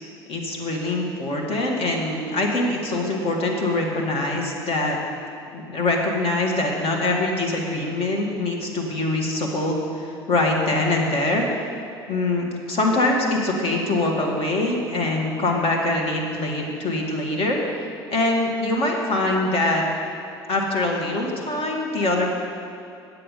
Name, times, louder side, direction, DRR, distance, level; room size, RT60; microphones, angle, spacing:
voice 1, 0.3-5.0 5.5-11.4 12.1-17.6 18.1-19.8 20.5-22.3, left 2 dB, 45° left, 0 dB, 1.9 m, -23 dB
9.8 x 7.9 x 5.4 m, 2.5 s
figure-of-eight pair, 60°, 13 cm